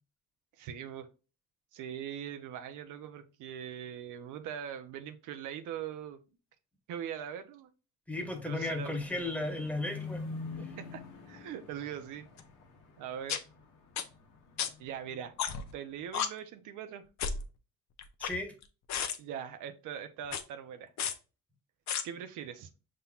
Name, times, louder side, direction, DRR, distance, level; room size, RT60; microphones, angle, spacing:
voice 1, 0.6-1.1 1.7-6.2 6.9-7.7 8.4-9.0 10.6-11.0 11.3-12.3 13.0-13.4 14.8-15.3 15.7-17.0 19.2-20.9 22.0-22.7, right 9 dB, 90° right, 8 dB, 0.7 m, -41 dB
sound 1, 8.1-15.2 15.6-16.1, left 4 dB, 85° left, 1.1 m, -45 dB
voice 2, 8.1-10.2 10.6-10.8 18.2-18.5, left 2 dB, 5° left, 4 dB, 1.1 m, -35 dB
sound 2, 12.4-12.5 13.3-13.4 14.0-14.1 14.6-14.7 15.4-15.7 16.1-16.3 17.2-17.4 18.0-18.6 18.9-19.2 20.2-20.4 21.0-21.1 21.9-22.0, left 7 dB, 65° left, 0.7 m, -32 dB
5.5 x 3.8 x 2.4 m, 0.32 s
cardioid pair, 90°, 30 cm